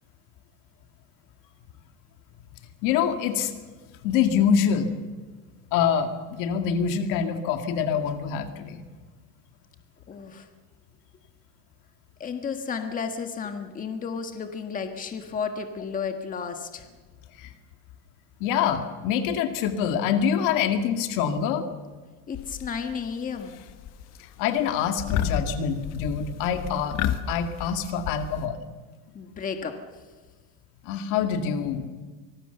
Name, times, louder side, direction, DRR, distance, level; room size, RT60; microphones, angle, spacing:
voice 1, 2.8-3.5 4.0-4.9 5.7-8.8 17.4-17.5 18.4-21.7 24.4-27.0 27.3-28.6 30.8-31.9, left 7 dB, 70° left, 7 dB, 2.2 m, -25 dB
voice 2, 10.1-10.5 12.2-16.9 22.3-23.6 29.1-29.7, left 6 dB, 25° left, 6 dB, 1.6 m, -32 dB
sound 1, 22.3-23.0 23.4-24.0 24.3-24.6 25.0-28.5, left 10 dB, 50° left, 1.3 m, -31 dB
25.0 x 19.5 x 6.9 m, 1.4 s
cardioid pair, 155°, 33 cm